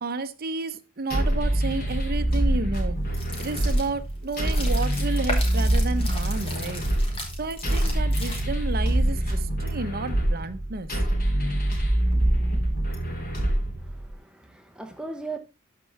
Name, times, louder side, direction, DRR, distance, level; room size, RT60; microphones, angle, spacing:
voice 1, 0.0-3.0 3.4-6.8 7.4-10.9, right 3 dB, 45° right, 0.8 m, -31 dB
sound 1, 1.1-14.1, right 1 dB, 45° left, 2.9 m, -25 dB
sound 2, 3.1-8.8, left 1 dB, 25° left, 2.3 m, -36 dB
voice 2, 13.8-15.4, right 3 dB, 5° right, 0.7 m, -38 dB
13.0 x 4.7 x 3.3 m
head